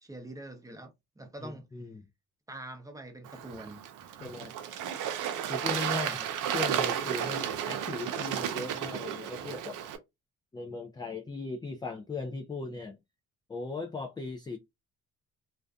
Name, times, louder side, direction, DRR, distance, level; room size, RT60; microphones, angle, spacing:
voice 1, 0.0-1.7 2.5-3.8 5.9-6.3, right 1 dB, 10° right, 0.7 m, -44 dB
voice 2, 1.4-2.1 4.2-4.5 5.5-6.1 6.5-9.8 10.5-13.0 13.5-14.6, left 3 dB, 15° left, 0.3 m, -38 dB
Bird / Water, 3.3-10.0, right 9 dB, 85° right, 0.6 m, -33 dB
2.5 x 2.1 x 2.4 m
cardioid pair, 90°, 30 cm